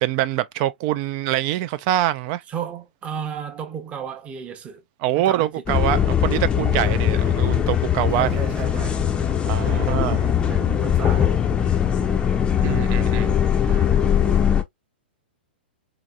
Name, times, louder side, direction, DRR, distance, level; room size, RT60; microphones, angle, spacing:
voice 1, 0.0-2.4 5.0-8.4 9.5-10.2 12.6-13.3, right 14 dB, 40° right, 0.4 m, -24 dB
voice 2, 2.5-4.8 5.2-5.8 6.8-7.0 8.1-9.0 9.6-11.4 13.7-14.1, right 8 dB, 20° right, 0.8 m, -34 dB
sound 1, 5.7-14.6, left 9 dB, 15° left, 0.6 m, -20 dB
4.0 x 2.9 x 2.4 m
figure-of-eight pair, 110°, 6 cm